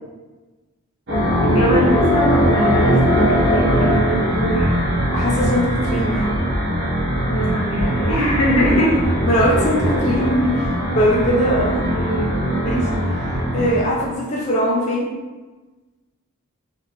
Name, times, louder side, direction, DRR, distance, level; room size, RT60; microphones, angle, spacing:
sound 1, 1.1-13.9, equal, 55° right, 1.1 m, -20 dB
voice 1, 1.4-4.7 7.2-8.9 11.5-12.3, equal, 80° left, -3 dB, 1.0 m, -22 dB
sound 2, 4.5-5.0 5.3-5.8 6.1-6.6 6.9-7.4 7.7-8.2 8.5-9.0 9.3-9.5, equal, 15° left, 1.0 m, -31 dB
voice 2, 5.1-6.3 8.5-8.8 9.2-11.8 12.6-12.9 13.5-15.1, equal, 30° left, -5 dB, 0.6 m, -20 dB
2.9 x 2.9 x 3.4 m, 1.3 s
head